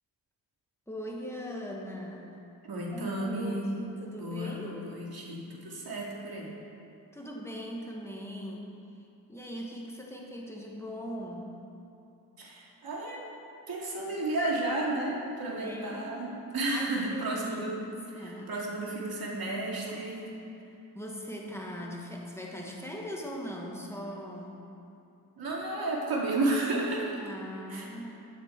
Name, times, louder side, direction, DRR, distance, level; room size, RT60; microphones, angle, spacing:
voice 1, 0.9-2.4 2.9-4.9 7.1-8.7 9.0-11.6 15.6-16.2 16.7-18.5 20.9-24.6 27.2-28.1, equal, 5° left, -2 dB, 1.5 m, -40 dB
voice 2, 2.6-3.7 4.2-6.5 12.4-13.2 13.7-17.8 18.1-20.3 25.4-27.1 27.7-27.9, right 2 dB, 75° right, -3 dB, 2.3 m, -32 dB
13.0 x 10.0 x 4.4 m, 2.9 s
wide cardioid pair, 110°, 36 cm